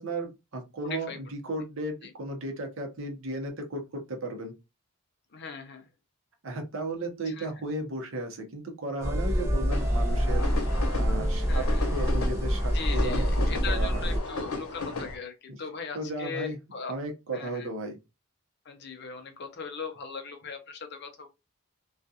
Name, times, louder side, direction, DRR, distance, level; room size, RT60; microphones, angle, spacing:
voice 1, 0.0-4.5 6.4-10.7 11.0-13.3 13.7-14.0 15.9-16.6 16.9-18.0, right 1 dB, 65° right, 0.8 m, -35 dB
voice 2, 0.8-1.3 2.0-2.1 5.3-5.9 7.3-7.5 11.5-11.8 12.7-16.9 17.3-17.7 18.6-21.3, left 5 dB, 50° left, 0.5 m, -39 dB
sound 1, 9.0-14.2, equal, 15° right, 0.5 m, -26 dB
sound 2, 9.7-15.2, left 3 dB, 80° left, 0.8 m, -36 dB
2.4 x 2.3 x 2.6 m
head